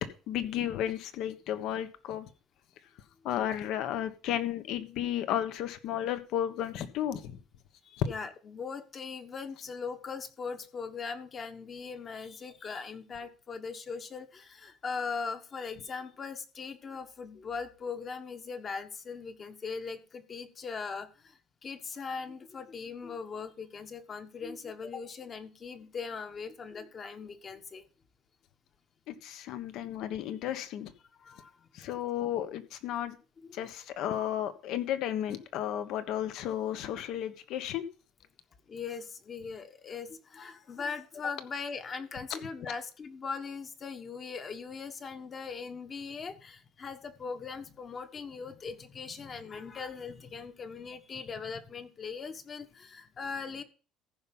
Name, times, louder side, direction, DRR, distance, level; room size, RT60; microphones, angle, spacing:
voice 1, 0.3-2.3 3.2-7.4 8.0-8.1 29.1-30.9 31.7-33.2 33.5-37.8 42.3-42.4, left 11 dB, 65° left, 1.2 m, -33 dB
voice 2, 7.8-27.9 31.1-31.7 33.4-33.8 38.7-53.6, left 5 dB, 30° left, 1.3 m, -40 dB
14.5 x 5.6 x 5.4 m
cardioid pair, 130°, 0 cm